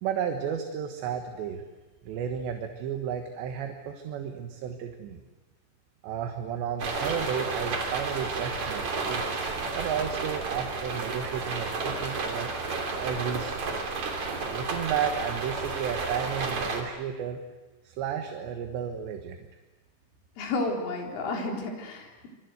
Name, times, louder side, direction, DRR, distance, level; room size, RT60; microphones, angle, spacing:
voice 1, 0.0-1.6 2.1-5.2 6.0-9.3 9.8-12.5 13.0-14.0 14.5-17.4 17.8-19.4, right 8 dB, 70° right, 5 dB, 3.5 m, -33 dB
sound 1, 6.8-16.8, right 3 dB, 40° right, 4.0 m, -32 dB
voice 2, 20.4-22.3, left 2 dB, 85° left, 1 dB, 6.6 m, -31 dB
26.5 x 24.5 x 8.0 m, 1.2 s
omnidirectional pair, 5.6 m